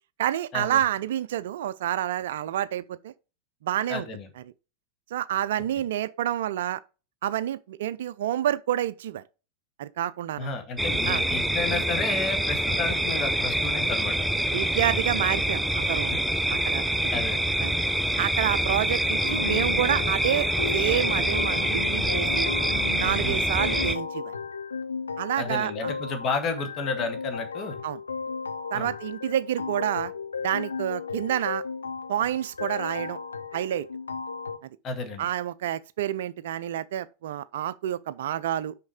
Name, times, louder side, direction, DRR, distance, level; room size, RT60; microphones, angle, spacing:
voice 1, 0.2-3.1 3.6-4.1 5.1-6.8 7.2-9.2 9.8-10.5 11.1-11.2 14.5-16.2 16.5-16.8 17.6-17.8 18.2-22.5 23.0-24.3 25.2-25.9 27.8-28.0 28.7-30.1 30.4-31.6 32.1-33.2 33.5-33.9 34.6-34.7 35.2-38.7, right 11 dB, 55° right, 0.4 m, -28 dB
voice 2, 3.9-4.3 10.4-14.1 16.5-16.6 17.1-17.4 23.2-23.4 25.4-27.8 28.7-28.9 34.8-35.3, left 4 dB, 30° left, 1.8 m, -32 dB
sound 1, 10.8-24.0, right 1 dB, 5° right, 0.5 m, -26 dB
sound 2, 19.2-34.6, left 5 dB, 75° left, 0.6 m, -35 dB
6.3 x 5.1 x 4.9 m
figure-of-eight pair, 90°, 0 cm